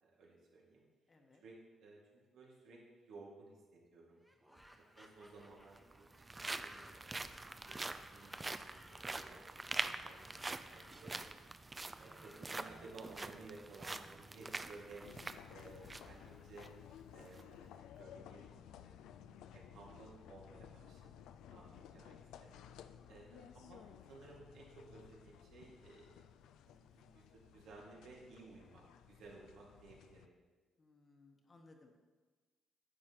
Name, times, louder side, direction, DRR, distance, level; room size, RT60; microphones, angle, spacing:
voice 1, 0.0-0.8 1.4-2.0 2.3-4.2 5.0-6.1 6.3-7.3 7.7-7.8 8.1-9.6 10.0-10.4 10.7-11.3 12.0-15.1 15.5-16.7 17.1-19.1 19.5-22.5 23.1-26.2 26.7-30.3, right 3 dB, 80° right, -3 dB, 2.0 m, -57 dB
voice 2, 1.1-1.4 21.7-22.1 30.8-31.9, left 2 dB, 35° left, 2 dB, 1.1 m, -64 dB
sound 1, 4.2-17.3, equal, 5° right, 1.0 m, -62 dB
sound 2, 4.6-4.7 5.6-16.2 16.6-16.7 17.2-17.4, right 2 dB, 20° right, 0.4 m, -45 dB
sound 3, 15.0-30.3, left 9 dB, 90° left, 0.3 m, -57 dB
10.0 x 7.4 x 3.0 m, 1.3 s
cardioid pair, 90°, 0 cm